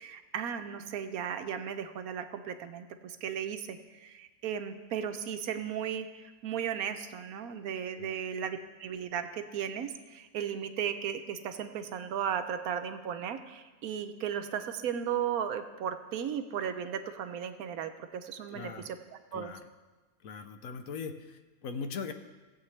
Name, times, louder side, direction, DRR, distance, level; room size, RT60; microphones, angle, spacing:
voice 1, 0.0-19.5, right 8 dB, 80° right, 9 dB, 1.2 m, -36 dB
voice 2, 18.5-18.9 19.3-19.6 20.2-22.1, left 5 dB, 70° left, 8 dB, 1.2 m, -40 dB
17.5 x 8.0 x 3.3 m, 1.2 s
omnidirectional pair, 1.5 m